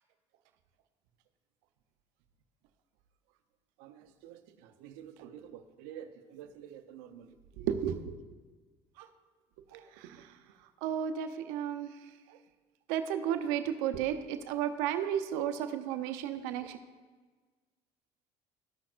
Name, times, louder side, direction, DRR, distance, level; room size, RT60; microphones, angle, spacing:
voice 1, 3.8-4.4 4.8-7.3 7.6-8.1 9.0-9.1 9.7-10.3 10.8-11.9 12.9-16.8, right 9 dB, 80° right, 8 dB, 0.7 m, -35 dB
14.0 x 5.9 x 2.5 m, 1.4 s
supercardioid pair, 90°, 14 cm